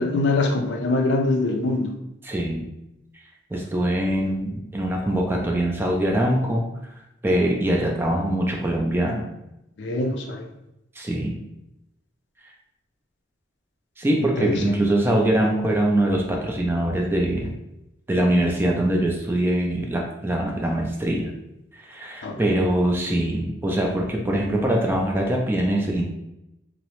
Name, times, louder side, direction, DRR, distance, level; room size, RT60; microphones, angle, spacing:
voice 1, 0.0-1.9 3.5-3.6 9.8-10.4 14.2-14.7 22.2-22.4, left 2 dB, 65° left, 4 dB, 0.4 m, -24 dB
voice 2, 2.2-2.7 3.5-6.6 7.2-9.3 11.0-11.4 14.0-17.5 18.1-21.3 21.7-26.0, right 1 dB, 10° right, 0 dB, 0.3 m, -23 dB
2.8 x 2.0 x 2.9 m, 0.88 s
head